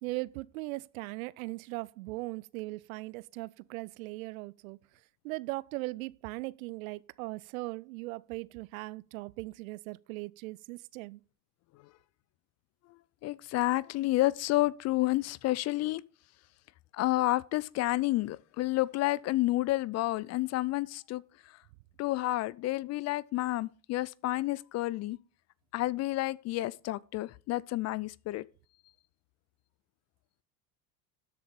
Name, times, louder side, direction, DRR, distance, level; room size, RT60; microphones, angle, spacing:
voice 1, 0.0-4.8 5.2-11.2, right 22 dB, 55° right, 0.6 m, -39 dB
voice 2, 13.2-16.0 16.9-21.2 22.0-25.2 25.7-28.4, left 17 dB, 35° left, 0.5 m, -30 dB
13.0 x 7.7 x 5.3 m
figure-of-eight pair, 75°, 50 cm